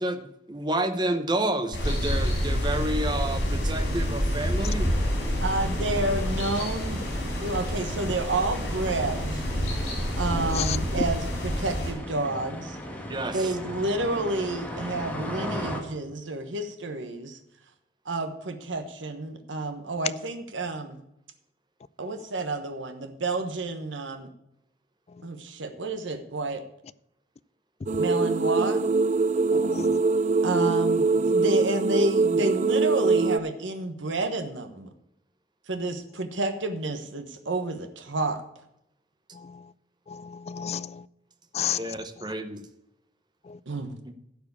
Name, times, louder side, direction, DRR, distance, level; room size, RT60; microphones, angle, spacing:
voice 1, 0.0-4.9 13.1-13.5 41.8-42.6 44.1-44.2, right 1 dB, 25° right, 0.9 m, -30 dB
sound 1, 1.7-11.9, equal, 70° left, 4.1 m, -28 dB
sound 2, 4.6-15.8, equal, 10° left, 1.6 m, -38 dB
voice 2, 5.4-7.0 7.4-9.4 10.2-12.8 13.3-17.4 18.0-21.0 22.0-24.3 25.2-26.6 28.0-28.9 30.4-34.9 35.7-38.4 43.7-44.0, right 2 dB, 90° right, 1.2 m, -30 dB
voice 3, 10.3-10.8 29.5-30.1 39.3-39.6 40.1-41.0 41.5-41.8 43.5-43.6, left 9 dB, 35° left, 0.3 m, -32 dB
sound 3, 27.9-33.4, right 4 dB, 40° right, 0.4 m, -23 dB
12.0 x 4.8 x 8.4 m
head